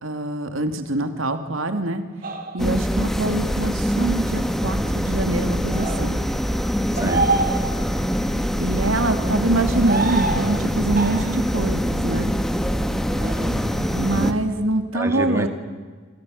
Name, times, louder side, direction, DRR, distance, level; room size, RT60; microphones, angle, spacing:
voice 1, 0.0-2.0 2.5-6.2 7.0-7.2 8.6-12.3 13.9-15.5, right 2 dB, 85° right, 8 dB, 2.6 m, -24 dB
sound 1, 2.2-2.8 5.7-6.0 7.0-8.1 9.6-10.6 11.0-11.5 13.1-13.4, right 3 dB, 45° right, 3.3 m, -26 dB
sound 2, 2.6-14.3, equal, ahead, 1.6 m, -24 dB
voice 2, 6.9-7.5 13.1-14.3 14.9-15.5, right 1 dB, 15° right, 6 dB, 2.1 m, -29 dB
28.0 x 27.0 x 6.6 m, 1.5 s
head